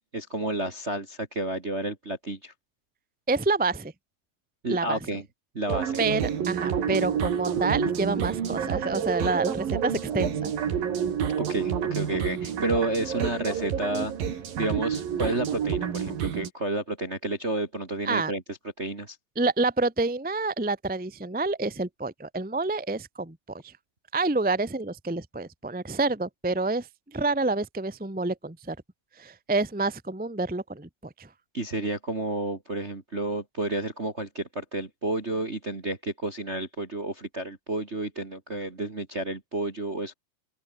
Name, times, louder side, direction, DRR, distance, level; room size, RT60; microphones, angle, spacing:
voice 1, 0.0-2.5 4.6-5.2 5.5-6.0 6.9-7.0 11.5-14.1 14.6-19.2 31.5-40.1, right 2 dB, 25° right, 1.6 m, -31 dB
voice 2, 3.3-3.9 4.7-5.2 6.0-10.5 18.0-18.3 19.3-23.4 23.6-23.7 24.1-28.7 29.2-30.9 31.2-31.3, right 3 dB, 5° right, 1.3 m, -28 dB
sound 1, 5.7-16.5, right 8 dB, 80° right, 4.6 m, -29 dB
open air
omnidirectional pair, 4.1 m